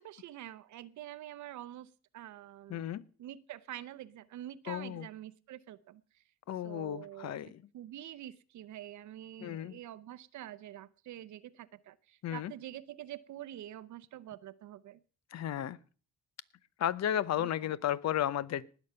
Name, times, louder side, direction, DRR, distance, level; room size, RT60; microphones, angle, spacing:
voice 1, 0.0-2.8 3.2-6.2 6.6-7.4 7.7-15.0 17.4-17.5, right 13 dB, 70° right, 11 dB, 0.7 m, -46 dB
voice 2, 2.7-3.0 4.7-5.1 6.5-7.6 9.4-9.8 12.2-12.5 15.3-15.8 16.8-18.7, left 11 dB, 60° left, 19 dB, 0.8 m, -33 dB
19.0 x 7.1 x 5.6 m, 0.39 s
cardioid pair, 90°, 30 cm